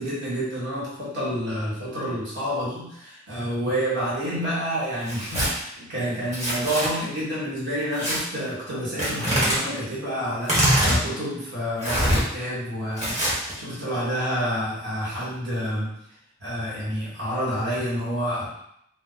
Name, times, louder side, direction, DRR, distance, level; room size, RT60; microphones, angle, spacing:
voice 1, 0.0-15.9 16.4-18.5, equal, 60° right, -7 dB, 1.4 m, -29 dB
Tearing, 5.0-5.5 6.3-6.9 7.9-8.2 9.0-9.6 10.4-11.0 11.8-12.2 13.0-13.5, equal, 35° right, 1.3 m, -23 dB
2.5 x 2.4 x 3.9 m, 0.75 s
head